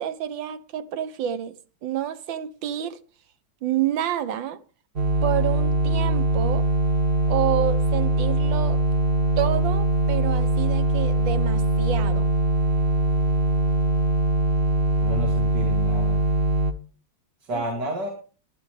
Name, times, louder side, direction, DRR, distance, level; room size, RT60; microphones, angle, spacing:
voice 1, 0.0-1.5 1.8-3.0 3.6-4.6 5.2-6.6 7.3-8.8 9.4-12.3 17.5-17.6, right 10 dB, 75° right, 1.6 m, -28 dB
sound 1, 5.0-16.7, equal, 35° right, 1.0 m, -22 dB
voice 2, 15.0-16.2 17.4-18.1, equal, 60° right, 3.2 m, -31 dB
23.0 x 9.1 x 3.3 m
omnidirectional pair, 2.1 m